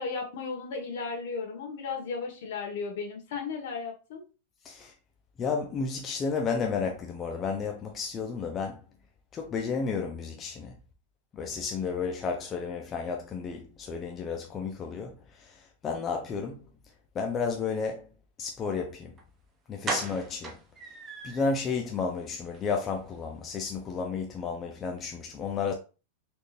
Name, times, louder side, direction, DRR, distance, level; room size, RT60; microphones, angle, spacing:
voice 1, 0.0-4.3, left 4 dB, 65° left, 1.3 m, -35 dB
voice 2, 5.4-8.8 9.3-10.7 11.3-16.6 17.1-18.1 18.4-19.1 19.7-20.5 21.2-25.7, left 5 dB, 20° left, 0.5 m, -32 dB
sound 1, 19.2-19.3 19.8-21.6 22.0-22.1 22.4-22.6 22.9-23.0, right 4 dB, 20° right, 0.6 m, -36 dB
4.2 x 2.5 x 3.3 m
supercardioid pair, 160°, 0 cm